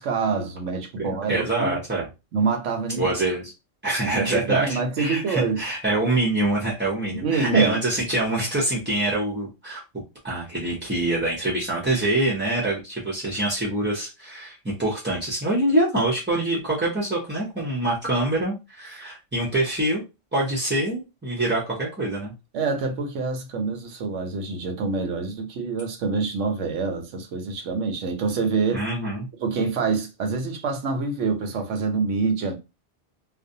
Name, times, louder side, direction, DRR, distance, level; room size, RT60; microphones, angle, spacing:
voice 1, 0.0-1.8 2.3-3.1 4.0-5.6 7.1-7.8 22.5-28.9 29.4-32.6, right 4 dB, 90° right, 1.0 m, -26 dB
voice 2, 1.1-2.1 3.0-3.5 3.8-9.8 10.2-20.0 20.3-22.3 28.7-29.3, right 2 dB, 15° right, 0.4 m, -25 dB
2.4 x 2.1 x 2.6 m
omnidirectional pair, 1.2 m